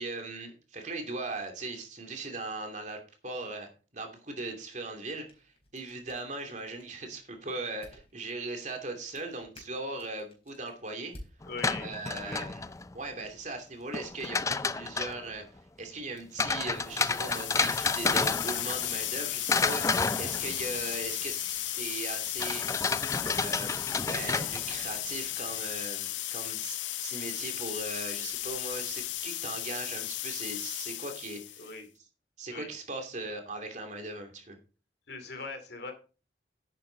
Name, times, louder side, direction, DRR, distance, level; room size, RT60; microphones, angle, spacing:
voice 1, 0.0-11.1 11.8-12.6 12.9-14.4 14.7-15.4 15.8-22.6 23.2-23.7 24.1-31.6 32.4-34.6, right 2 dB, 40° right, 4 dB, 2.6 m, -39 dB
sound 1, 5.0-12.1, left 1 dB, 35° left, 4.2 m, -56 dB
voice 2, 11.4-11.9 12.2-12.5 31.6-31.9 32.5-32.7 35.1-35.9, left 4 dB, 60° left, 6 dB, 2.8 m, -41 dB
sound 2, 11.4-12.9 13.9-15.3 16.4-19.2 19.5-20.9 22.4-24.9, left 4 dB, 15° left, 0.4 m, -30 dB
sound 3, 16.8-31.7, left 15 dB, 90° left, 0.7 m, -35 dB
11.0 x 9.0 x 3.9 m, 0.35 s
head